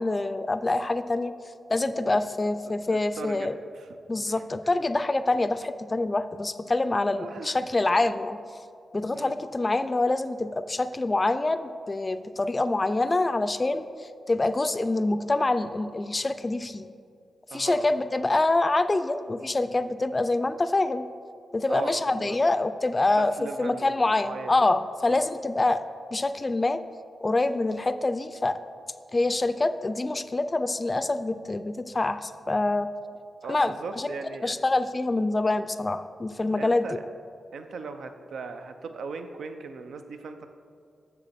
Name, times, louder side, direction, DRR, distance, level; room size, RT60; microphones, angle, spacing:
voice 1, 0.0-1.3 1.7-3.6 4.1-8.4 8.9-13.8 14.3-16.9 17.5-21.0 21.5-25.8 26.1-26.8 27.2-28.6 29.1-32.9 33.5-34.1 34.4-36.9, left 2 dB, 30° left, 12 dB, 0.3 m, -26 dB
voice 2, 2.9-3.5 3.7-3.9 4.3-4.4 7.1-7.6 8.0-8.1 9.1-9.3 17.5-17.8 21.7-22.4 23.2-24.5 25.1-25.2 33.4-34.5 36.6-37.0 37.5-40.5, right 4 dB, 85° right, 7 dB, 0.4 m, -38 dB
6.9 x 6.7 x 4.2 m, 2.4 s
cardioid pair, 65°, 0 cm